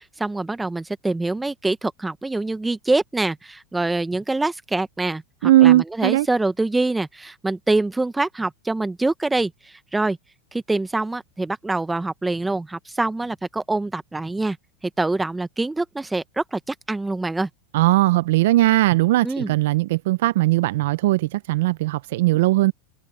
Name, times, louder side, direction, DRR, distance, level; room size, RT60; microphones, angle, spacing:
voice 1, 0.2-10.2 10.5-14.6 15.0-17.5 19.2-19.5, right 2 dB, 10° right, 1.2 m, -25 dB
voice 2, 5.4-6.3 17.7-22.7, right 16 dB, 70° right, 0.8 m, -18 dB
hypercardioid pair, 100°, 0 cm